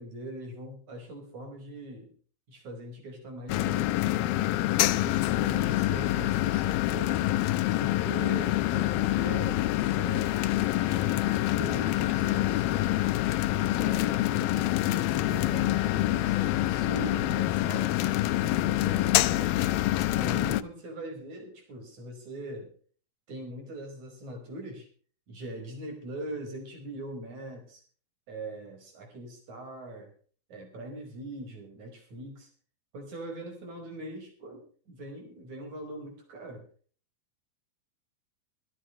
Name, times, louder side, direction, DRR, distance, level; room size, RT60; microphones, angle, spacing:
voice 1, 0.0-2.1 2.5-4.4 5.0-7.2 7.8-9.6 10.0-10.4 10.8-12.9 13.6-19.6 20.1-22.7 23.3-24.9 25.3-27.8 28.3-30.1 30.5-32.5 32.9-36.7, right 1 dB, 45° right, 4 dB, 6.5 m, -41 dB
sound 1, 3.5-20.6, left 15 dB, 75° left, 2.4 m, -26 dB
24.0 x 11.5 x 3.2 m, 0.42 s
omnidirectional pair, 4.5 m